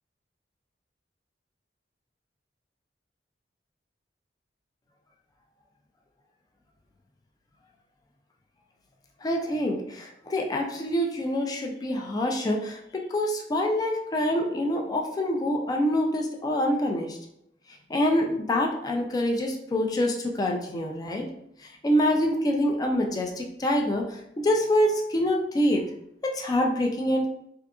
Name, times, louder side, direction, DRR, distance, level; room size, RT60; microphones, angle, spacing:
voice 1, 9.2-12.8 13.1-17.2 17.9-21.3 21.8-24.2 24.4-25.8 26.2-27.3, left 1 dB, 20° left, 1 dB, 0.3 m, -25 dB
2.7 x 2.4 x 2.3 m, 0.76 s
head